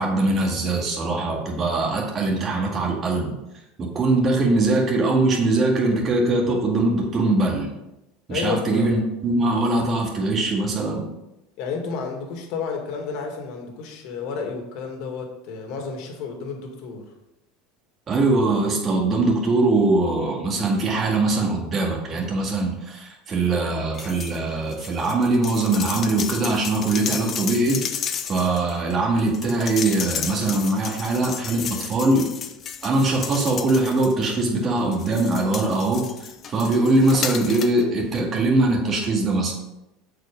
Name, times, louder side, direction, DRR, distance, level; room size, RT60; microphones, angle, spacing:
voice 1, 0.0-3.4 3.8-7.7 8.3-11.1 18.1-27.8 28.3-32.3 32.8-36.1 36.5-39.5, right 2 dB, 30° right, -1 dB, 2.0 m, -22 dB
voice 2, 8.3-9.0 11.6-17.1, left 5 dB, 60° left, 2 dB, 1.9 m, -31 dB
sound 1, 23.9-24.4 24.7-34.4 34.9-37.8 38.1-38.2, left 8 dB, 35° left, 0.6 m, -33 dB
7.8 x 4.9 x 5.2 m, 0.93 s
supercardioid pair, 135°, 0 cm